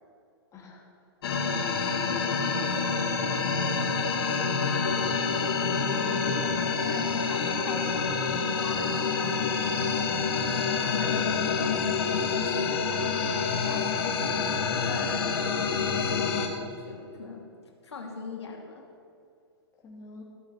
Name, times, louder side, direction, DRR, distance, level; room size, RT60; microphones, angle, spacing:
voice 1, 0.5-0.8 2.0-2.4 5.8-6.5 14.9-15.2 19.8-20.2, left 6 dB, 20° left, -2 dB, 3.3 m, -43 dB
sound 1, 1.2-16.5, left 5 dB, 65° left, 2.2 m, -27 dB
voice 2, 6.1-14.2 14.4-16.3 16.8-17.4 17.8-18.8, left 4 dB, 90° left, 1 dB, 2.6 m, -41 dB
14.5 x 7.9 x 8.8 m, 2.4 s
hypercardioid pair, 130°, 14 cm